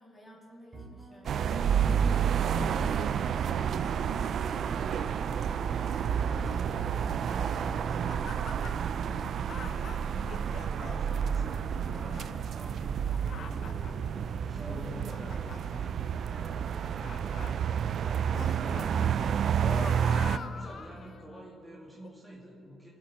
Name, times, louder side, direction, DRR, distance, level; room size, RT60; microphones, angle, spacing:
voice 1, 0.0-5.0 5.4-8.4 14.4-15.6 16.3-16.8, equal, 20° left, -3 dB, 2.8 m, -51 dB
sound 1, 0.7-17.4, right 2 dB, 25° right, 3.0 m, -49 dB
sound 2, 1.3-20.4, right 8 dB, 60° right, 0.4 m, -30 dB
voice 2, 6.1-6.9 9.0-13.9 14.4-15.9 16.9-19.1 19.7-22.9, equal, ahead, -6 dB, 2.2 m, -49 dB
sound 3, 7.9-8.9 9.5-11.2 11.7-12.3 12.8-14.1 14.7-15.8 16.6-17.7 18.3-18.9 19.3-21.4 22.0-22.1, left 5 dB, 55° left, 0.7 m, -44 dB
21.5 x 7.9 x 4.2 m, 2.5 s
cardioid pair, 90°, 0 cm